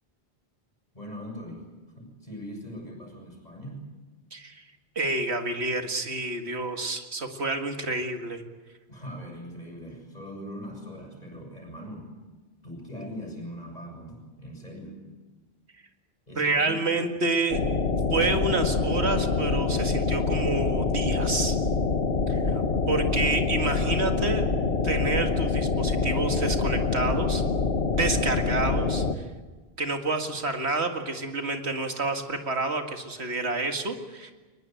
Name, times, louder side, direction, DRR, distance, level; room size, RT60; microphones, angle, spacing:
voice 1, 0.9-1.7 2.0-3.9 8.9-12.1 12.6-15.0 16.3-17.2, equal, 40° left, 2 dB, 7.1 m, -41 dB
voice 2, 4.3-4.6 5.0-8.4 16.4-17.6 18.1-21.6 22.3-24.5 24.8-27.4 27.9-29.1 29.8-34.3, right 3 dB, 90° right, 5 dB, 2.3 m, -29 dB
sound 1, 17.5-29.2, left 4 dB, 80° left, 1.6 m, -25 dB
22.5 x 20.5 x 9.2 m, 1.3 s
omnidirectional pair, 1.1 m